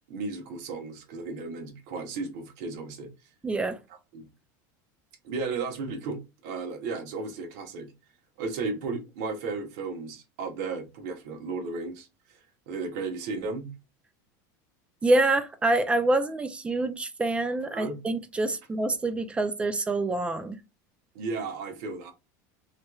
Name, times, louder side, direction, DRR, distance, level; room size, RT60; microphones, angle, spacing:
voice 1, 0.1-3.1 4.1-4.3 5.2-7.9 8.4-12.4 12.7-13.7 17.7-18.0 21.1-22.1, right 4 dB, 70° right, 1.0 m, -34 dB
voice 2, 3.4-3.8 15.0-20.6, right 2 dB, 10° right, 0.3 m, -26 dB
3.2 x 3.0 x 2.3 m
supercardioid pair, 150°, 10 cm